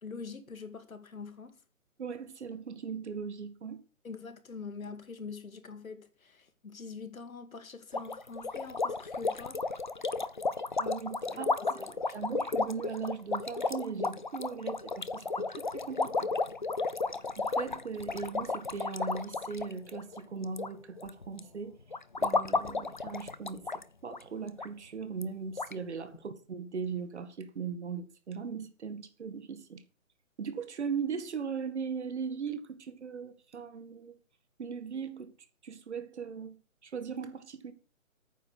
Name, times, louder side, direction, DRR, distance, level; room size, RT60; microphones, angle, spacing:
voice 1, 0.0-1.6 4.0-9.8 11.2-12.2, left 4 dB, 75° left, 2.2 m, -44 dB
voice 2, 2.0-3.8 10.8-11.8 12.1-16.3 17.4-21.8 22.2-23.6 24.0-29.8 30.4-34.2 34.6-35.3 35.6-37.7, right 6 dB, 55° right, 2.0 m, -39 dB
sound 1, 7.9-20.7 21.0-21.4 21.9-23.8 24.1-24.2 24.6-24.7 25.2-25.3 25.6-25.7, left 3 dB, 35° left, 0.5 m, -33 dB
9.3 x 6.8 x 8.2 m
hypercardioid pair, 165°, 42 cm